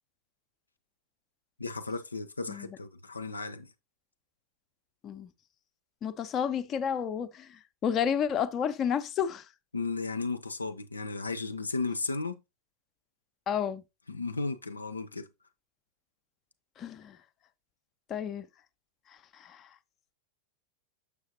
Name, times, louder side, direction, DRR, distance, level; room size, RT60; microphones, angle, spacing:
voice 1, 1.6-3.7 9.7-12.4 14.1-15.3, left 3 dB, 80° left, 0.5 m, -34 dB
voice 2, 6.0-9.5 13.5-13.8 16.8-17.2 18.1-18.5 19.3-19.7, left 8 dB, 30° left, 0.6 m, -31 dB
6.7 x 6.4 x 2.7 m
figure-of-eight pair, 90°, 0 cm